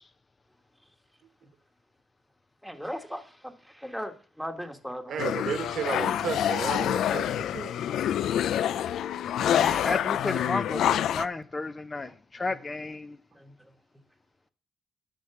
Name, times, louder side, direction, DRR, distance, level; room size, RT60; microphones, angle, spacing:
voice 1, 2.6-5.2 13.4-13.5, equal, ahead, 1.4 m, -38 dB
voice 2, 5.1-7.8, right 7 dB, 65° right, 1.4 m, -33 dB
sound 1, 5.2-11.3, left 10 dB, 75° left, 0.4 m, -27 dB
voice 3, 9.5-13.2, left 3 dB, 25° left, 0.7 m, -32 dB
10.5 x 6.4 x 5.8 m
cardioid pair, 90°, 0 cm